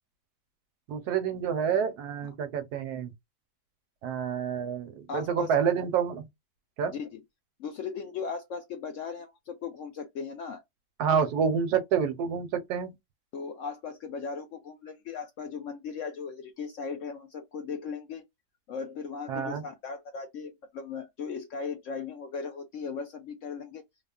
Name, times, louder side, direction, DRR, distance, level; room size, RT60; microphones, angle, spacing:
voice 1, 0.9-3.1 4.0-6.3 6.8-6.9 11.0-12.9 19.3-19.6, right 7 dB, 75° right, 1.2 m, -28 dB
voice 2, 5.1-5.5 6.9-7.2 7.6-10.6 13.3-18.2 18.7-23.8, left 5 dB, 70° left, 0.7 m, -37 dB
3.5 x 2.0 x 2.3 m
omnidirectional pair, 1.7 m